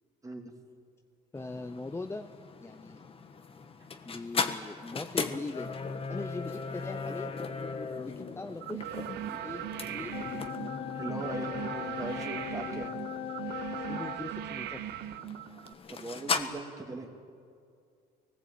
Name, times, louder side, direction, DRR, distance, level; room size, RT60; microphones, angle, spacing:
sound 1, 1.3-16.4, left 5 dB, 35° left, 1.4 m, -38 dB
voice 1, 1.3-2.3 2.6-3.0 4.0-5.8 6.1-7.3 8.0-8.9 9.3-10.4 12.6-12.9 13.8-14.8, left 3 dB, 15° left, 7 dB, 0.8 m, -41 dB
sound 2, 8.6-15.7, right 11 dB, 80° right, 0.9 m, -39 dB
sound 3, 10.1-14.2, left 10 dB, 70° left, 0.8 m, -39 dB
voice 2, 11.0-12.9 15.9-17.1, right 2 dB, 20° right, 2 dB, 2.7 m, -40 dB
22.5 x 19.5 x 8.6 m, 2.3 s
cardioid pair, 110°, 17 cm